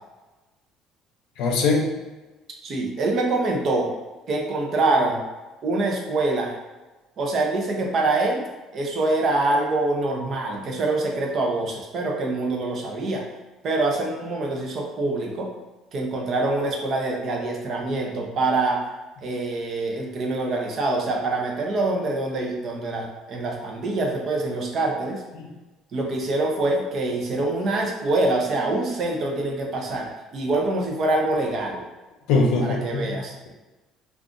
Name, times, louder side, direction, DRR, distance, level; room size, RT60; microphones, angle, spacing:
voice 1, 1.4-1.9 25.4-25.5 32.3-33.2, left 3 dB, 75° left, 0 dB, 0.6 m, -21 dB
voice 2, 2.6-3.9 4.3-5.2 5.6-6.6 7.2-8.4 8.7-13.2 13.6-15.5 15.9-18.8 19.2-25.2 25.9-31.8 32.6-33.3, right 2 dB, 45° right, 0 dB, 0.6 m, -25 dB
2.4 x 2.3 x 3.7 m, 1.1 s
cardioid pair, 135°, 0 cm